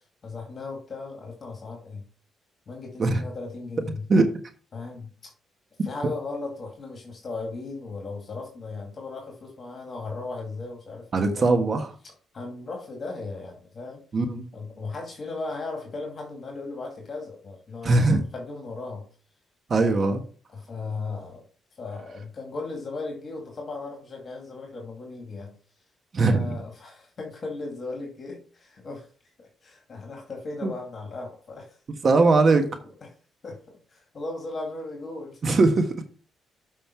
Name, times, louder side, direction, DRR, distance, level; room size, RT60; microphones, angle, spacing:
voice 1, 0.2-2.0 2.7-4.1 4.7-5.3 5.8-11.6 12.3-14.0 14.5-19.0 20.5-21.4 21.7-25.5 26.3-29.1 29.4-31.8 32.8-32.9 33.4-35.4, left 3 dB, 40° left, 1 dB, 2.5 m, -37 dB
voice 2, 11.1-11.9 14.1-14.4 17.8-18.2 19.7-20.2 26.1-26.5 30.6-30.7 32.0-32.7 35.4-36.0, right 3 dB, 45° right, 6 dB, 1.3 m, -20 dB
7.3 x 5.4 x 4.5 m, 0.40 s
cardioid pair, 90°, 0 cm